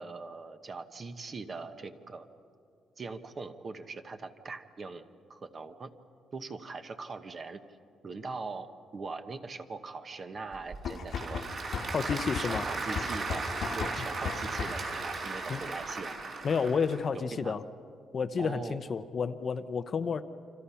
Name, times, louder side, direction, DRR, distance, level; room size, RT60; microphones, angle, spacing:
voice 1, 0.0-2.3 3.0-5.0 5.3-5.9 6.3-7.6 8.0-11.4 12.4-13.4 13.7-16.2 17.3-17.6 18.4-18.9, right 4 dB, 30° right, 9 dB, 1.0 m, -41 dB
Applause / Crowd, 10.5-17.0, right 3 dB, 50° right, 4.4 m, -36 dB
sound 1, 10.7-14.9, left 6 dB, 55° left, 1.3 m, -37 dB
voice 2, 11.9-12.7 15.5-15.6 16.4-17.6 18.1-20.2, left 5 dB, 35° left, 11 dB, 0.7 m, -30 dB
29.0 x 25.5 x 5.7 m, 2.5 s
cardioid pair, 155°, 0 cm